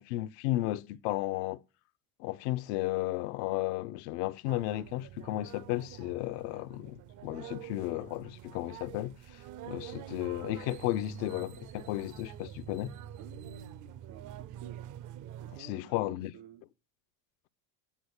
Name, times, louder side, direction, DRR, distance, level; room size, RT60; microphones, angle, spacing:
voice 1, 0.0-1.6 2.2-12.9 15.6-16.3, left 16 dB, 80° left, 0.7 m, -34 dB
sound 1, 4.5-15.6, right 11 dB, 40° right, 0.5 m, -46 dB
voice 2, 13.2-14.9 15.4-16.6, right 7 dB, 85° right, 3.4 m, -51 dB
8.6 x 8.2 x 8.0 m
supercardioid pair, 120°, 48 cm